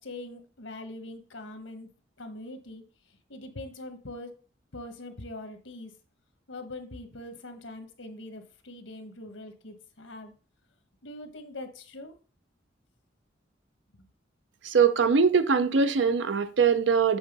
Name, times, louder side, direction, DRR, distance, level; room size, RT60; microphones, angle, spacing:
voice 1, 0.0-1.9 2.2-2.8 3.3-4.3 4.7-5.9 6.5-10.3 11.0-12.2 14.0-14.1, left 2 dB, 90° left, 1.2 m, -42 dB
voice 2, 14.6-17.2, right 5 dB, 75° right, 0.6 m, -22 dB
7.9 x 3.7 x 5.3 m
head